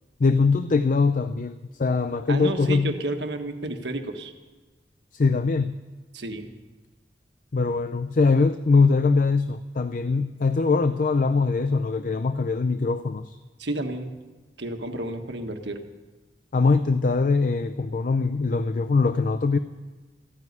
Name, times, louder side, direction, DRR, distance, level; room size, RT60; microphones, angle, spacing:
voice 1, 0.2-2.9 5.1-5.7 7.5-13.4 16.5-19.6, left 4 dB, 50° left, 11 dB, 0.5 m, -22 dB
voice 2, 2.3-4.3 6.1-6.5 13.6-14.1 14.6-15.8, right 2 dB, 75° right, 5 dB, 1.4 m, -31 dB
14.5 x 9.4 x 9.6 m, 1.3 s
head